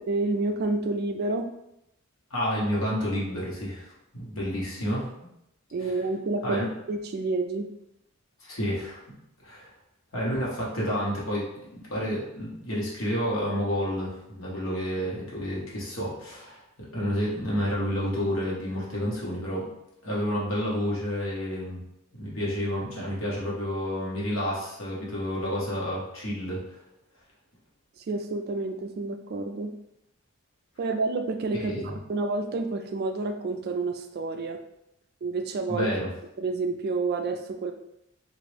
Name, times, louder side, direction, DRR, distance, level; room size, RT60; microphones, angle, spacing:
voice 1, 0.1-1.5 5.7-6.6 6.9-7.7 28.0-29.7 30.8-34.6 35.2-35.9 36.4-37.7, right 3 dB, 50° right, 6 dB, 0.3 m, -29 dB
voice 2, 2.3-5.1 5.8-5.9 6.4-6.7 8.4-9.0 9.4-9.7 10.1-11.5 11.7-16.6 16.9-19.7 20.0-21.8 22.2-26.8 31.5-31.9 35.7-36.1, equal, 75° left, -5 dB, 1.1 m, -30 dB
3.0 x 2.5 x 3.2 m, 0.82 s
head